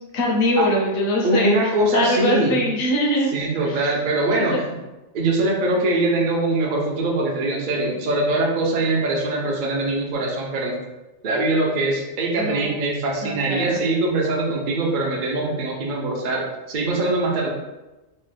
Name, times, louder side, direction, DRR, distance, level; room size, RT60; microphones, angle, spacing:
voice 1, 0.0-3.3 3.7-3.9 4.5-4.6 12.4-12.7 13.2-13.8, left 1 dB, 60° left, -2 dB, 0.8 m, -23 dB
voice 2, 1.2-2.6 3.3-4.6 5.1-10.8 11.2-17.5, right 2 dB, 50° right, -2 dB, 0.6 m, -22 dB
3.1 x 2.2 x 3.1 m, 1.1 s
omnidirectional pair, 1.4 m